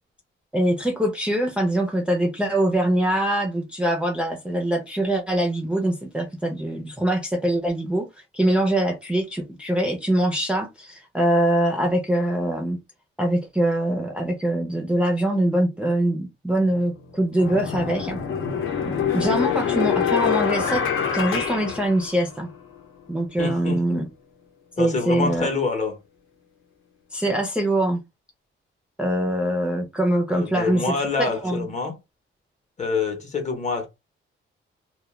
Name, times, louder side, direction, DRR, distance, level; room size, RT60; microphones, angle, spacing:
voice 1, 0.5-8.1 8.3-12.8 13.2-18.2 18.8-20.8 21.1-22.5 23.1-24.1 24.8-25.5 27.1-28.0 29.0-31.7, right 1 dB, 5° right, 0.5 m, -23 dB
sound 1, 16.6-16.7 17.4-22.6, left 7 dB, 75° left, 0.8 m, -25 dB
voice 2, 23.4-24.0 24.8-26.0 30.3-32.0 32.8-33.9, left 4 dB, 35° left, 0.8 m, -26 dB
2.2 x 2.2 x 3.0 m
cardioid pair, 125°, 21 cm